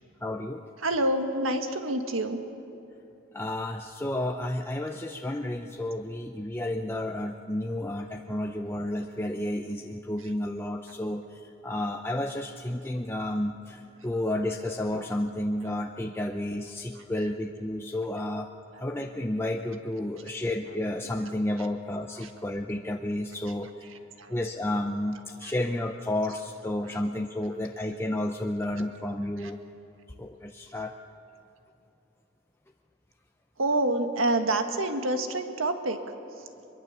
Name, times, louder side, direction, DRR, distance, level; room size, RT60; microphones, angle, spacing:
voice 1, 0.2-0.6 3.3-18.5 18.8-23.7 24.3-29.6 30.2-30.9, left 1 dB, 10° left, 3 dB, 0.6 m, -31 dB
voice 2, 0.8-2.4 8.3-8.4 11.8-11.9 16.9-17.0 21.6-21.7 22.2-22.3 23.8-24.3 25.4-25.5 26.8-27.0 29.4-29.5 33.6-36.0 36.4-36.5, right 1 dB, 85° right, 6 dB, 1.7 m, -28 dB
23.0 x 22.5 x 6.8 m, 2.8 s
head